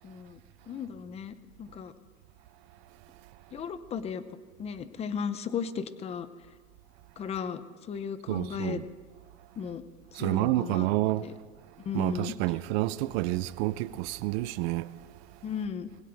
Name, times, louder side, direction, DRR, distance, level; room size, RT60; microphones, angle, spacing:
voice 1, 0.0-0.4 0.7-1.9 3.5-4.2 4.6-6.3 7.2-7.6 7.9-8.8 9.6-9.8 10.1-10.9 11.2-11.3 11.8-12.3 15.4-15.9, left 7 dB, 15° left, 0.6 m, -35 dB
voice 2, 8.3-8.9 10.1-11.3 11.9-14.9, right 17 dB, 55° right, 0.6 m, -29 dB
21.0 x 16.5 x 3.4 m
supercardioid pair, 145°, 38 cm